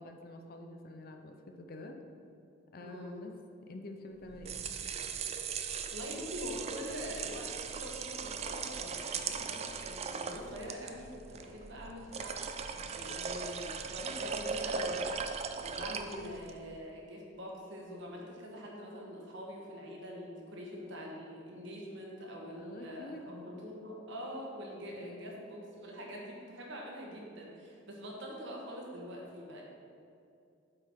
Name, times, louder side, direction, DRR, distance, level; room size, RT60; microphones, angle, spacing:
voice 1, 0.0-2.0 2.7-3.3 3.6-4.6 15.9-16.3 22.6-23.3 24.9-25.3, left 1 dB, 50° left, 5 dB, 0.5 m, -47 dB
voice 2, 2.8-3.2 5.9-12.4 12.7-15.0 15.5-29.6, equal, 65° right, -2 dB, 1.2 m, -44 dB
sound 1, 4.2-16.6, right 5 dB, 35° right, 0.3 m, -39 dB
8.0 x 4.5 x 3.6 m, 2.5 s
head